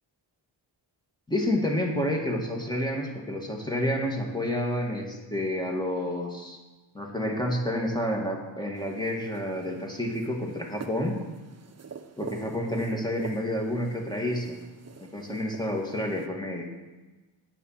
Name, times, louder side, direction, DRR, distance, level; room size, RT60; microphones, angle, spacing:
voice 1, 1.3-6.6 6.9-11.2 12.2-14.6 15.0-16.7, left 1 dB, 10° left, 0 dB, 2.0 m, -29 dB
sound 1, 8.7-16.3, right 5 dB, 35° right, 0.8 m, -45 dB
9.3 x 7.5 x 5.7 m, 1.2 s
cardioid pair, 75°, 46 cm